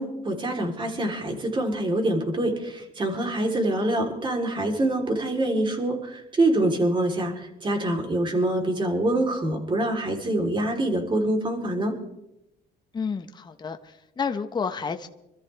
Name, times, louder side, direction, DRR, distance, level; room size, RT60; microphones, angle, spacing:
voice 1, 0.0-12.0, right 1 dB, 30° right, 2 dB, 3.8 m, -25 dB
voice 2, 12.9-15.1, left 5 dB, 25° left, 6 dB, 1.0 m, -30 dB
26.0 x 13.5 x 3.5 m, 0.89 s
cardioid pair, 110°, 17 cm